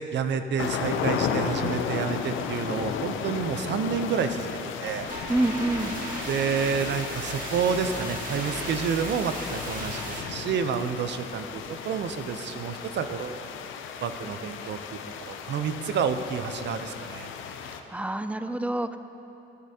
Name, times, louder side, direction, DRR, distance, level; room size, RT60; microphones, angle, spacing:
voice 1, 0.1-5.1 6.3-13.4 14.0-17.3, right 6 dB, 60° right, 9 dB, 0.6 m, -29 dB
sound 1, 0.6-17.8, left 7 dB, 80° left, 0.6 m, -34 dB
sound 2, 5.1-10.2, right 1 dB, 45° right, 1.8 m, -36 dB
voice 2, 5.3-6.0 17.6-19.0, right 1 dB, 5° right, 10 dB, 0.3 m, -28 dB
13.5 x 8.5 x 2.8 m, 2.9 s
cardioid pair, 90°, 20 cm